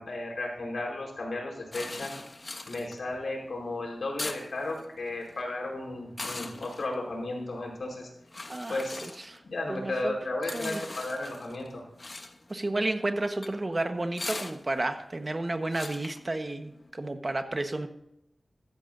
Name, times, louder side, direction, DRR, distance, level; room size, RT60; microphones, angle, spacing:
voice 1, 0.0-2.1 2.7-8.1 8.7-9.1 9.4-11.8, left 2 dB, 85° left, -1 dB, 4.5 m, -34 dB
sound 1, 1.7-16.9, left 2 dB, 40° left, 1.2 m, -42 dB
voice 2, 8.5-9.4 9.7-10.2 10.5-10.8 12.5-17.9, right 2 dB, 35° right, 7 dB, 1.3 m, -32 dB
15.0 x 13.5 x 2.7 m, 0.82 s
wide cardioid pair, 75°, 0 cm